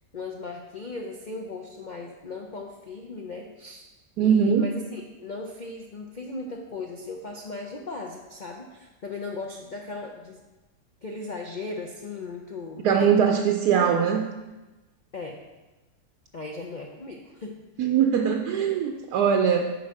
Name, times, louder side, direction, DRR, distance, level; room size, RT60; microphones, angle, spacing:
voice 1, 0.1-3.9 4.2-10.4 11.0-13.4 13.7-13.9 15.1-15.4 16.3-17.6, left 3 dB, 60° left, 1 dB, 0.4 m, -37 dB
voice 2, 4.2-4.7 12.8-14.2 17.8-19.8, right 7 dB, 75° right, 4 dB, 1.1 m, -21 dB
8.1 x 4.6 x 6.4 m, 1.1 s
omnidirectional pair, 1.8 m